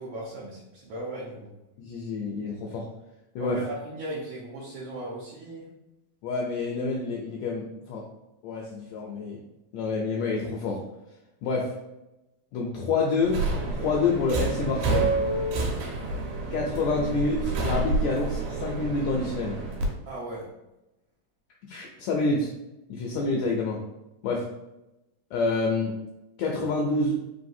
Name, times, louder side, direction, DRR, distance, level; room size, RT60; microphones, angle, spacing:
voice 1, 0.0-1.5 3.4-5.7 20.0-20.5, right 1 dB, 70° right, -7 dB, 1.7 m, -37 dB
voice 2, 1.8-2.8 3.3-3.6 6.2-8.1 8.4-9.4 9.7-10.8 11.4-11.7 12.5-13.4 13.7-15.1 16.5-19.6 21.7-22.5 22.9-23.8 24.2-24.4 25.3-25.9 26.4-27.2, left 3 dB, 80° left, -1 dB, 1.6 m, -27 dB
Subway metro underground, 13.2-19.9, right 2 dB, 90° right, 2.3 m, -28 dB
4.8 x 3.2 x 2.6 m, 0.93 s
omnidirectional pair, 3.7 m